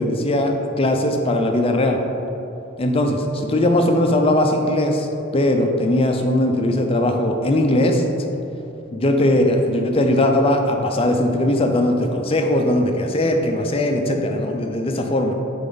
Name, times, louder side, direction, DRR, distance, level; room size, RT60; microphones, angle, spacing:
voice 1, 0.0-2.0 2.8-5.1 5.3-8.0 8.9-15.3, left 1 dB, 30° left, 3 dB, 0.5 m, -19 dB
6.8 x 4.3 x 4.0 m, 3.0 s
head